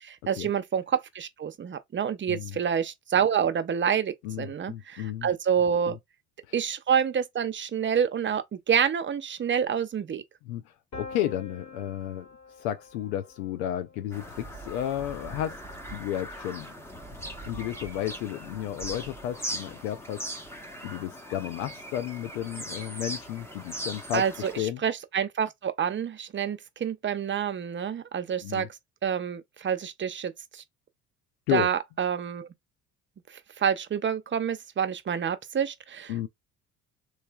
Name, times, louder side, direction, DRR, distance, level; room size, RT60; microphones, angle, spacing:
voice 1, 0.0-6.0 6.5-10.2 24.1-28.7 29.0-30.3 31.5-32.5 33.6-36.3, right 8 dB, 25° right, 0.6 m, -28 dB
voice 2, 2.3-2.6 4.2-5.3 5.9-6.0 10.4-10.6 11.0-12.3 12.6-15.6 15.9-16.7 17.5-20.2 20.8-24.8 28.4-28.7 31.5-31.7 36.1-36.3, left 12 dB, 80° left, 0.5 m, -32 dB
Piano, 10.9-16.7, left 4 dB, 40° left, 1.8 m, -48 dB
Bird vocalization bird call bird song, 14.1-24.6, right 1 dB, 5° left, 0.8 m, -40 dB
3.1 x 2.8 x 2.2 m
hypercardioid pair, 60°, 43 cm